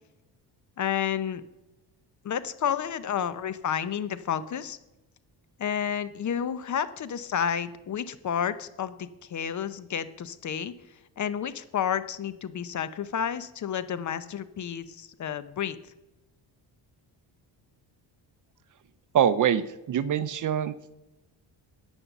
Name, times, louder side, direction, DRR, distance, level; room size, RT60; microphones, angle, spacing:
voice 1, 0.8-1.4 2.2-4.8 5.6-10.7 11.2-15.8, left 8 dB, 40° left, 14 dB, 0.7 m, -30 dB
voice 2, 19.1-20.7, right 9 dB, 45° right, 15 dB, 0.6 m, -24 dB
10.5 x 8.9 x 7.1 m, 0.97 s
cardioid pair, 165°, 45 cm